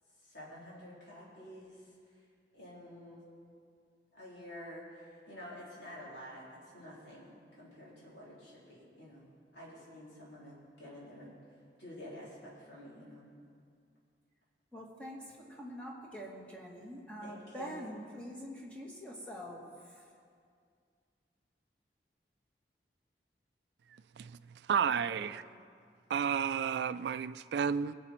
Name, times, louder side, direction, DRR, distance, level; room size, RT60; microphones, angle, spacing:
voice 1, 0.2-1.8 2.5-3.3 4.1-9.2 9.5-11.3 11.8-13.2 17.2-17.8, left 1 dB, 80° left, 3.8 m, -49 dB
voice 2, 14.7-20.0 24.8-25.3, equal, 5° left, 1.9 m, -45 dB
voice 3, 24.7-25.4 26.1-27.9, right 7 dB, 70° right, 0.3 m, -31 dB
21.5 x 7.7 x 4.4 m
head